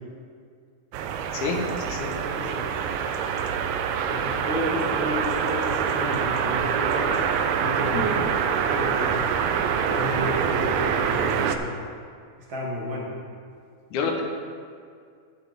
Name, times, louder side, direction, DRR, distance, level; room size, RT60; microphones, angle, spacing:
sound 1, 0.9-11.6, right 7 dB, 80° right, 1.7 m, -25 dB
voice 1, 1.3-2.1 7.9-8.2 13.9-14.2, left 4 dB, 70° left, 2 dB, 2.4 m, -28 dB
voice 2, 2.1-2.7 4.1-7.2 7.6-8.2 8.6-9.4 9.7-11.7 12.5-13.1, equal, 45° right, -4 dB, 1.9 m, -31 dB
13.0 x 7.9 x 3.5 m, 2.2 s
omnidirectional pair, 3.7 m